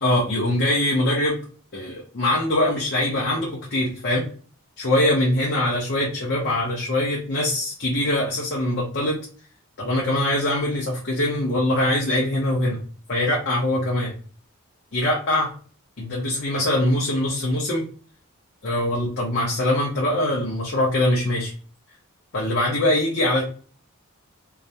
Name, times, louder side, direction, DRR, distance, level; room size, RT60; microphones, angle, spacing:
voice 1, 0.0-1.4 1.7-4.2 4.8-9.2 9.8-12.8 13.1-14.1 14.9-15.5 16.0-17.8 18.6-21.5 22.3-23.4, left 1 dB, 50° left, -4 dB, 0.7 m, -23 dB
2.4 x 2.1 x 2.6 m, 0.42 s
head